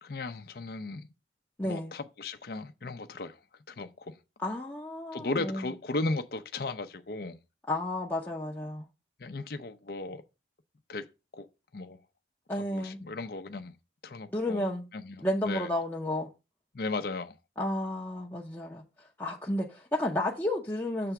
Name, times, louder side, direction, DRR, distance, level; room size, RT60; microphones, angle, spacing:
voice 1, 0.0-1.1 1.6-3.4 3.7-4.2 5.1-7.4 9.2-10.2 10.9-11.1 11.3-11.5 11.7-12.0 12.5-13.8 14.0-14.6 14.9-15.7 16.7-17.4, left 3 dB, 55° left, 0.6 m, -36 dB
voice 2, 1.6-1.9 4.4-5.7 7.7-8.8 12.5-13.0 14.3-14.8 15.2-16.3 17.6-21.1, left 1 dB, 10° left, 0.7 m, -32 dB
6.7 x 3.4 x 5.9 m
head